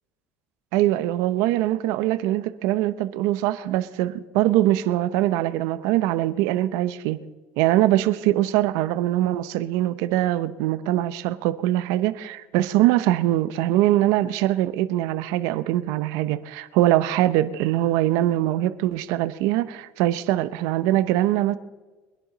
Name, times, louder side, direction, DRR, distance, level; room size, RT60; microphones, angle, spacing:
voice 1, 0.7-7.2 7.6-21.6, right 14 dB, 85° right, 0.8 m, -22 dB
22.5 x 10.5 x 4.1 m
supercardioid pair, 105°, 6 cm